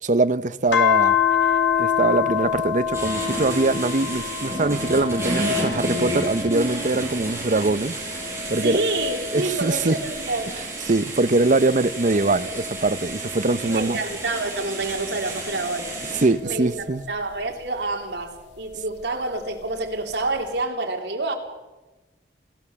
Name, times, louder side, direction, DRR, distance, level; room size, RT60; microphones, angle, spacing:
voice 1, 0.0-1.2 1.8-8.0 8.5-8.8 9.3-10.0 10.9-14.0 16.1-17.0, right 2 dB, 45° right, 0.7 m, -22 dB
sound 1, 0.7-7.4 7.9-10.8 11.4-14.2 14.9-17.4 18.7-19.8, left 9 dB, 80° left, 2.0 m, -28 dB
sound 2, 2.9-16.2, right 2 dB, 15° right, 7.1 m, -32 dB
voice 2, 8.5-10.5 13.6-16.0 16.4-21.3, right 2 dB, 75° right, 3.3 m, -28 dB
27.5 x 14.0 x 7.1 m
head